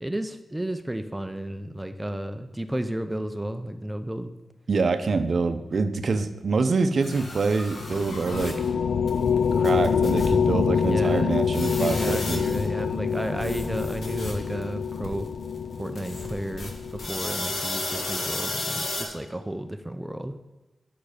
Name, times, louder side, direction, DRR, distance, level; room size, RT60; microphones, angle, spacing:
voice 1, 0.0-4.3 10.7-11.4 11.8-15.3 15.8-20.4, right 1 dB, 10° right, 8 dB, 0.4 m, -32 dB
voice 2, 4.7-8.6 9.5-12.4, right 4 dB, 60° right, 10 dB, 0.6 m, -25 dB
sound 1, 7.0-8.7 9.1-9.2 9.4-9.5 9.6-10.4 10.7-10.8 11.5-12.8 13.1-14.6 15.0-15.2 16.0-19.1, left 2 dB, 65° left, 1.3 m, -33 dB
sound 2, 7.8-17.6, left 6 dB, 85° left, 0.3 m, -26 dB
6.5 x 5.9 x 4.9 m, 1.1 s
wide cardioid pair, 100°, 0 cm